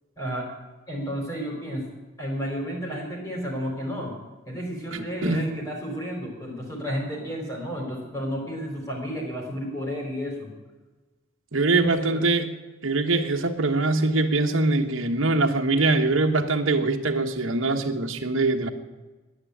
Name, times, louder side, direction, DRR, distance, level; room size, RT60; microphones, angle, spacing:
voice 1, 0.2-0.5 0.9-1.9 2.2-4.2 4.4-10.5 11.7-12.2, equal, 15° left, -1 dB, 4.6 m, -32 dB
voice 2, 4.9-5.4 11.5-12.5 12.8-18.7, right 3 dB, 70° right, 3 dB, 1.4 m, -23 dB
10.5 x 9.9 x 10.0 m, 1.2 s
head